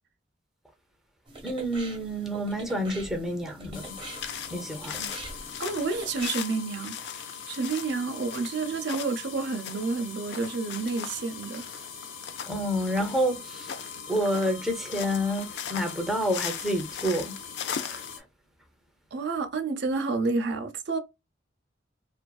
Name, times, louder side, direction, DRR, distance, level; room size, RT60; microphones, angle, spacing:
sound 1, 1.3-6.3, right 3 dB, 25° right, 0.8 m, -44 dB
voice 1, 1.4-4.0 4.5-5.1 12.5-13.7 14.1-17.4 17.7-18.3, equal, ahead, 0.4 m, -29 dB
sound 2, 3.7-18.2, left 6 dB, 85° left, 0.7 m, -42 dB
sound 3, 4.0-18.1, left 8 dB, 60° left, 0.4 m, -39 dB
voice 2, 5.6-7.0 7.5-11.7 19.1-21.0, right 4 dB, 60° right, 0.5 m, -29 dB
2.5 x 2.3 x 2.2 m
head